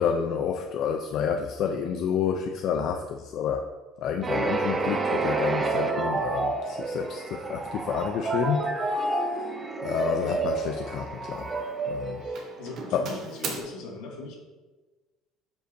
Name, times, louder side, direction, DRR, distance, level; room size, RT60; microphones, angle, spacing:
voice 1, 0.0-3.6 4.0-9.4 9.8-11.5 11.8-12.2 12.9-13.1, left 7 dB, 50° left, 4 dB, 0.4 m, -29 dB
sound 1, 4.2-13.0, right 3 dB, 15° right, 0.5 m, -29 dB
Doorbell, 7.4-7.6 8.1-8.4 8.7-9.1 10.1-11.2 11.4-11.9 12.4-13.6, right 4 dB, 45° right, 1.1 m, -40 dB
voice 2, 12.2-14.4, left 3 dB, 75° left, -1 dB, 2.0 m, -40 dB
10.0 x 5.4 x 2.6 m, 1.2 s
cardioid pair, 160°, 0 cm